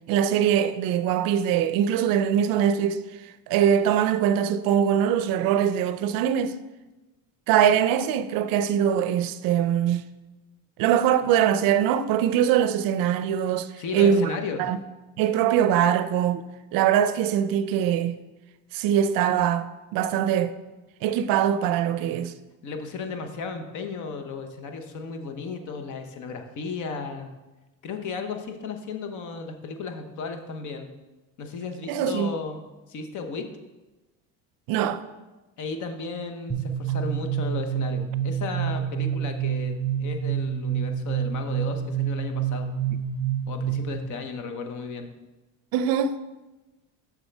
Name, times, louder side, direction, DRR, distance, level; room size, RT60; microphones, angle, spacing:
voice 1, 0.1-3.0 3.5-6.5 7.5-10.0 10.8-13.7 13.9-14.3 14.6-14.8 15.2-16.4 16.7-18.1 18.7-20.5 21.0-22.3 31.9-32.3 34.7-35.0 45.7-46.2, right 9 dB, 70° right, 0.5 m, -22 dB
voice 2, 13.8-14.6 22.6-27.3 27.8-30.9 31.4-32.6 32.9-33.5 35.6-42.7 43.5-45.1, left 4 dB, 55° left, 0.9 m, -34 dB
sound 1, 36.5-44.1, right 9 dB, 5° left, 1.0 m, -28 dB
7.2 x 6.2 x 3.4 m
cardioid pair, 130°, 36 cm